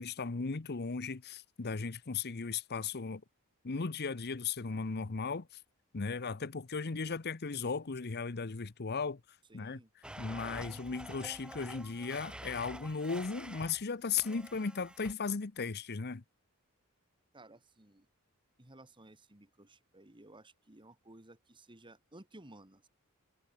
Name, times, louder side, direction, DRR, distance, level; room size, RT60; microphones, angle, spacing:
voice 1, 0.0-3.2 3.6-5.6 5.9-9.2 9.5-16.2, left 5 dB, 45° left, 0.8 m, -36 dB
voice 2, 9.5-9.9 17.3-18.1 18.6-22.9, right 1 dB, 20° right, 2.1 m, -56 dB
Domestic sounds home sounds, 10.0-13.8 14.2-15.1, right 1 dB, 5° right, 1.0 m, -48 dB
head